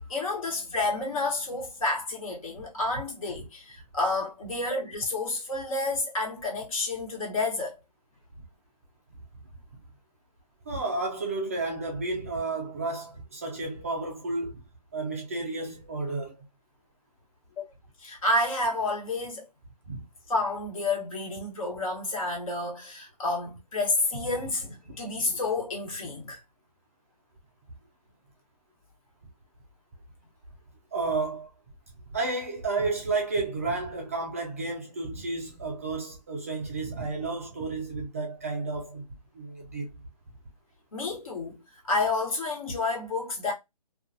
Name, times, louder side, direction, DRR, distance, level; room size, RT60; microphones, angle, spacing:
voice 1, 0.1-7.7 18.0-19.4 20.3-26.4 40.9-41.6 41.8-43.5, left 2 dB, 55° left, 1.2 m, -30 dB
voice 2, 10.7-14.6 14.9-16.4 19.9-20.0 30.9-31.5 32.1-39.0 39.3-39.9, right 3 dB, 20° right, 0.3 m, -32 dB
2.4 x 2.3 x 2.5 m
figure-of-eight pair, 150°, 21 cm